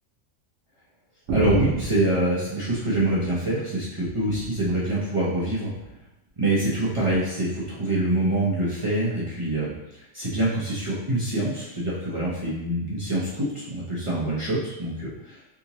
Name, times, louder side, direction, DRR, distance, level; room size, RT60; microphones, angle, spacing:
voice 1, 1.3-5.7 6.4-9.7 10.1-15.4, right 1 dB, 30° right, -8 dB, 0.7 m, -25 dB
sound 1, 1.3-3.5 3.9-4.8 5.7-6.1 7.1-7.2, right 3 dB, 85° right, 1.3 m, -32 dB
3.6 x 2.6 x 2.9 m, 0.92 s
omnidirectional pair, 1.3 m